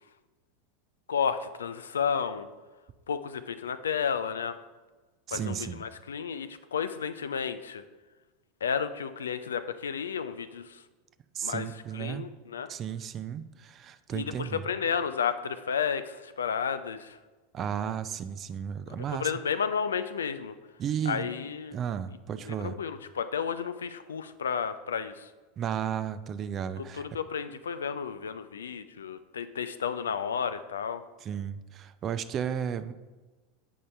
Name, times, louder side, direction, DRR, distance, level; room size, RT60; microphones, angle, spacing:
voice 1, 1.1-2.5 3.1-4.6 5.3-7.8 8.6-10.8 11.4-11.7 11.9-12.7 14.1-17.2 19.1-20.6 21.1-21.8 22.5-25.3 26.8-31.0, left 7 dB, 75° left, 12 dB, 0.4 m, -32 dB
voice 2, 5.3-5.8 11.3-12.3 12.7-14.7 17.5-19.3 20.8-21.3 21.7-22.8 25.6-27.1 31.2-32.9, right 8 dB, 35° right, 12 dB, 0.4 m, -34 dB
8.6 x 5.4 x 3.3 m, 1.3 s
figure-of-eight pair, 85°, 0 cm